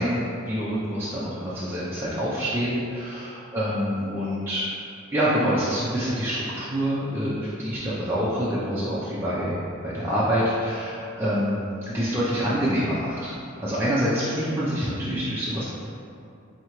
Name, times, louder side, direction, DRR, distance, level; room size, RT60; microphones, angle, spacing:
voice 1, 0.0-4.8 5.1-9.6 9.8-13.3 13.6-15.6, equal, 10° right, -10 dB, 0.4 m, -26 dB
4.5 x 2.8 x 2.9 m, 2.5 s
head